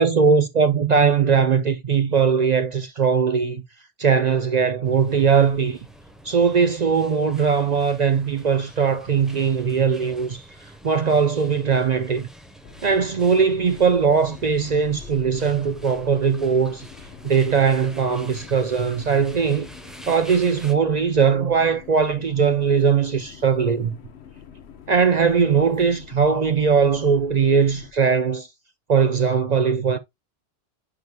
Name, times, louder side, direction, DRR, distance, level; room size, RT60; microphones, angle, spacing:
voice 1, 0.0-3.6 4.0-5.8 6.2-10.5 10.8-12.3 12.8-16.9 17.2-19.7 20.1-23.9 24.9-28.5 28.9-30.0, right 6 dB, 55° right, 0.5 m, -20 dB
sound 1, 4.8-20.7, equal, ahead, 1.0 m, -46 dB
sound 2, 12.6-27.9, left 7 dB, 65° left, 1.1 m, -45 dB
9.7 x 4.8 x 2.3 m
omnidirectional pair, 1.2 m